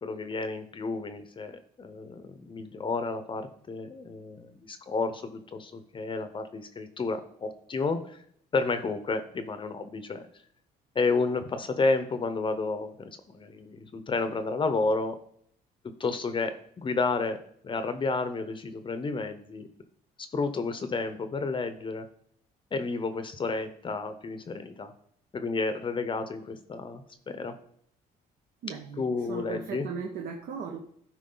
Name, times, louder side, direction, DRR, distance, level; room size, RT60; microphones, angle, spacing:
voice 1, 0.0-1.5 1.8-8.2 8.5-10.3 10.9-15.2 16.0-17.4 17.6-19.7 20.2-22.1 22.7-24.9 25.3-27.6 29.0-29.9, left 3 dB, 30° left, 10 dB, 0.8 m, -31 dB
voice 2, 28.6-30.8, right 6 dB, 65° right, 2 dB, 1.0 m, -37 dB
11.5 x 4.8 x 3.9 m, 0.66 s
cardioid pair, 110°, 17 cm